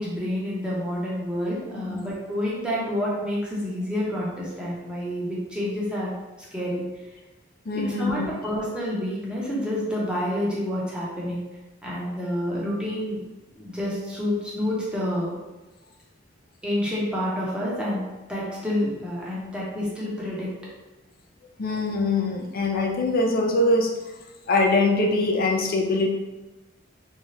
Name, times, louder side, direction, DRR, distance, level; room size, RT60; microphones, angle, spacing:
voice 1, 0.0-6.1 6.5-6.8 7.8-11.4 11.8-13.2 13.6-15.3 16.6-18.0 18.3-20.5, left 1 dB, 5° right, -6 dB, 0.9 m, -28 dB
voice 2, 7.7-8.3 21.6-23.9 24.5-26.1, left 2 dB, 50° left, 2 dB, 0.5 m, -23 dB
3.4 x 2.8 x 3.2 m, 1.1 s
head